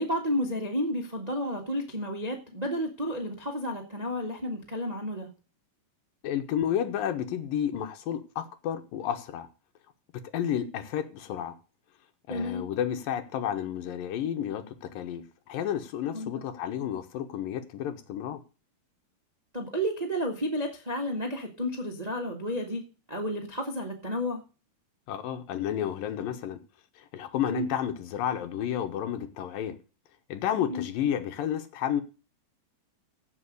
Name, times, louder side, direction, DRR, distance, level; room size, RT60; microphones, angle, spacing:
voice 1, 0.0-5.3 12.3-12.6 16.1-16.3 19.5-22.8 23.1-24.4 27.5-27.7 30.7-30.8, equal, 45° right, 0.5 m, -31 dB
voice 2, 6.2-9.5 10.3-11.6 12.3-18.4 25.1-26.6 27.0-29.8 30.3-32.0, left 9 dB, 75° left, 2.6 m, -31 dB
16.0 x 5.4 x 6.6 m
omnidirectional pair, 4.4 m